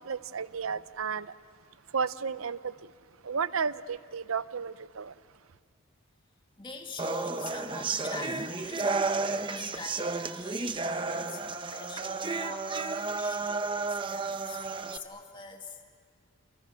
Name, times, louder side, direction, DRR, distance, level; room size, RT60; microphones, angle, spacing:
voice 1, 0.0-1.3 1.9-2.9 3.2-5.1, right 6 dB, 80° right, 0.7 m, -33 dB
voice 2, 6.6-15.8, left 3 dB, 25° left, 2.2 m, -45 dB
sound 1, 7.0-15.0, right 3 dB, 25° right, 0.7 m, -32 dB
29.5 x 29.0 x 6.4 m
head